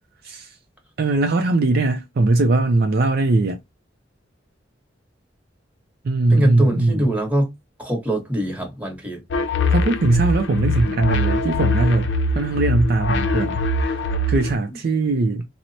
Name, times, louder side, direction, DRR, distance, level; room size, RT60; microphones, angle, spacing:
voice 1, 0.2-0.5 1.0-3.6 6.0-7.2 9.7-15.5, right 2 dB, 55° right, 0.4 m, -20 dB
voice 2, 6.3-7.5 7.8-9.2, right 1 dB, 10° right, 1.1 m, -22 dB
sound 1, 9.3-14.5, left 2 dB, 70° left, 0.5 m, -22 dB
4.5 x 2.0 x 2.6 m
head